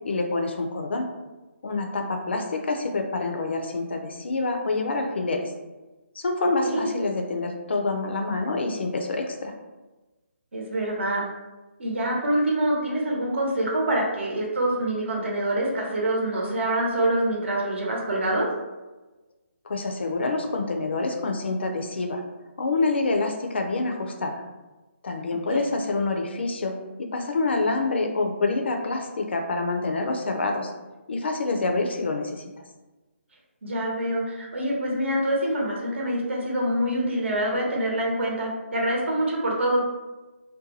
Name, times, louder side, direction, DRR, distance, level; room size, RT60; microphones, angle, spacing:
voice 1, 0.0-1.1 1.6-5.5 6.2-9.5 19.7-22.2 22.6-24.4 25.0-30.7 31.1-32.5, left 3 dB, 55° left, 4 dB, 0.4 m, -27 dB
voice 2, 10.5-11.3 11.8-18.5 25.5-25.6 33.6-39.8, right 1 dB, 65° right, -2 dB, 0.9 m, -25 dB
2.6 x 2.2 x 3.9 m, 1.1 s
hypercardioid pair, 170°, 7 cm